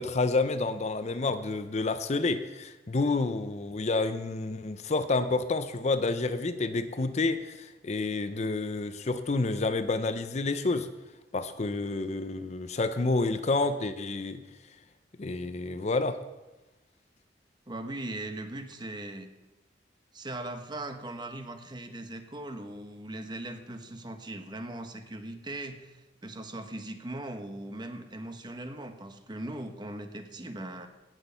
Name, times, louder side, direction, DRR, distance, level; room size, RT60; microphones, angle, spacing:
voice 1, 0.0-10.9 11.3-14.4 15.2-16.2, left 3 dB, 40° left, 11 dB, 0.6 m, -29 dB
voice 2, 17.7-19.3 20.1-30.9, right 1 dB, 25° right, 7 dB, 1.0 m, -39 dB
16.5 x 6.2 x 5.6 m, 1.1 s
head